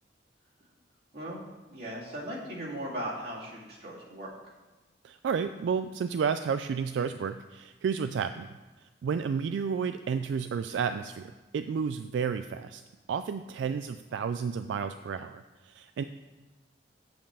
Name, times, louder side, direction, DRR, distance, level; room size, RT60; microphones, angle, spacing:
voice 1, 1.1-4.5, right 1 dB, 60° right, -5 dB, 2.3 m, -38 dB
voice 2, 5.0-8.5 9.0-12.8 13.1-16.0, right 6 dB, 75° right, 10 dB, 0.3 m, -31 dB
7.7 x 5.3 x 6.8 m, 1.2 s
head